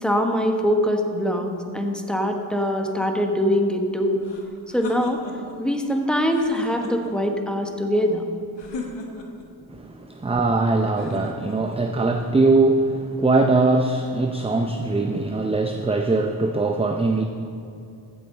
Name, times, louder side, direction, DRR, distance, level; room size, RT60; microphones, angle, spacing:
voice 1, 0.0-4.2 4.7-5.2 5.6-8.2, equal, ahead, 3 dB, 1.2 m, -23 dB
sound 1, 4.2-5.6 6.2-7.3 8.6-9.5 10.9-11.8, left 3 dB, 75° left, 1.4 m, -37 dB
voice 2, 9.7-17.2, right 3 dB, 15° right, 5 dB, 0.5 m, -21 dB
14.5 x 8.1 x 3.8 m, 2.5 s
cardioid pair, 55°, 43 cm